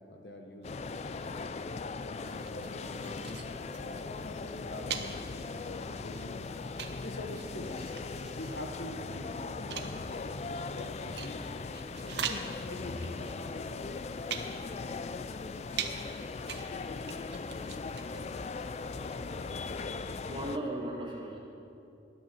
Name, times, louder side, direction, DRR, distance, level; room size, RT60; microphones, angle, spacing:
voice 1, 0.0-1.5 2.0-6.4 7.0-7.9 8.3-11.5 12.0-13.5, left 1 dB, 65° left, 4 dB, 1.1 m, -45 dB
sound 1, 0.6-20.6, left 4 dB, 35° left, 0.3 m, -39 dB
sound 2, 2.2-19.8, right 7 dB, 70° right, 0.9 m, -44 dB
voice 2, 20.2-21.4, right 1 dB, 25° right, -4 dB, 2.1 m, -37 dB
12.0 x 8.4 x 7.5 m, 2.7 s
head